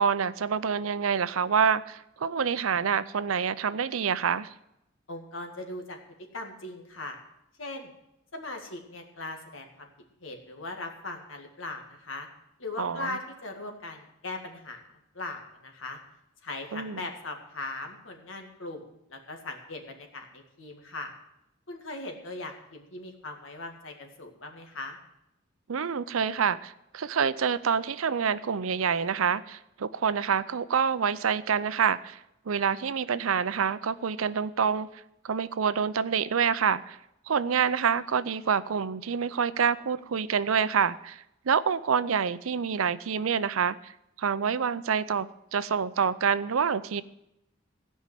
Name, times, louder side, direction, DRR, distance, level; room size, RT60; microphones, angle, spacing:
voice 1, 0.0-4.5 12.8-13.1 16.7-17.0 25.7-32.2 32.5-34.9 35.2-37.0 37.3-43.9 44.2-45.3 45.5-47.0, right 6 dB, 90° right, 15 dB, 0.6 m, -27 dB
voice 2, 5.1-6.0 6.3-7.2 7.6-7.9 8.3-9.9 10.2-12.3 12.6-14.8 15.1-16.0 16.4-18.8 19.1-21.1 21.7-25.0, left 2 dB, 70° left, 4 dB, 2.1 m, -39 dB
16.5 x 5.5 x 9.1 m, 0.83 s
head